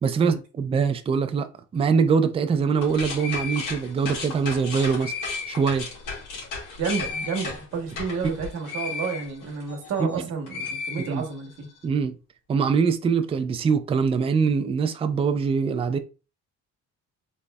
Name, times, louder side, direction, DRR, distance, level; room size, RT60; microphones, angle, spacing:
voice 1, 0.0-5.1 5.5-5.8 10.0-10.2 11.0-11.2 11.8-12.1 12.5-16.0, right 5 dB, 20° right, 0.3 m, -23 dB
sound 1, 2.7-10.2 10.5-11.6, left 4 dB, 75° left, 1.9 m, -34 dB
voice 2, 6.8-11.7, right 5 dB, 55° right, 1.2 m, -30 dB
4.0 x 3.1 x 2.3 m
cardioid pair, 140°, 30 cm